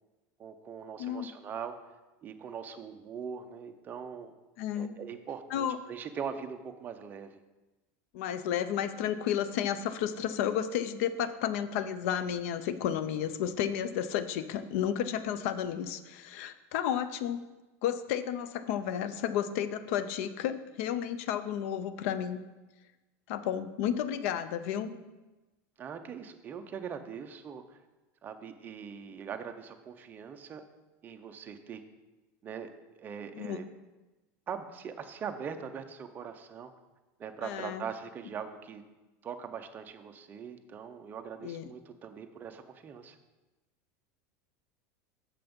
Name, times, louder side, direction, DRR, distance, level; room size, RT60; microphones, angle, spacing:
voice 1, 0.4-1.8 2.2-4.3 4.8-7.4 25.8-27.8 28.2-30.6 31.0-31.8 32.4-32.7 33.0-33.7 34.5-36.7 37.2-38.8 39.2-43.2, right 7 dB, 25° right, 7 dB, 0.5 m, -41 dB
voice 2, 4.6-5.0 5.5-5.8 8.1-17.4 17.8-22.4 23.3-25.0 33.3-33.6 37.4-37.8 41.4-41.7, left 9 dB, 65° left, 12 dB, 0.5 m, -32 dB
6.9 x 5.7 x 5.2 m, 1.1 s
supercardioid pair, 150°, 8 cm